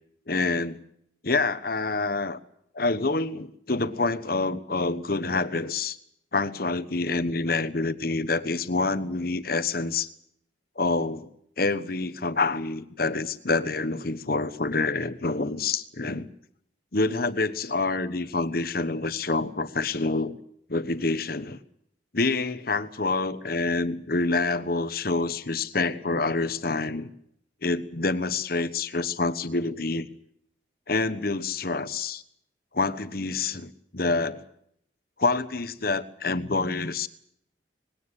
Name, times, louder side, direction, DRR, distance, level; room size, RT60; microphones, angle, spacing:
voice 1, 0.3-0.8 1.2-2.4 2.7-6.0 6.3-10.1 10.8-11.3 11.6-16.3 16.9-20.4 20.7-21.6 22.1-27.1 27.6-30.1 30.9-32.2 32.7-34.4 35.2-37.1, left 3 dB, 50° left, 13 dB, 1.2 m, -27 dB
20.5 x 17.5 x 9.9 m, 0.72 s
head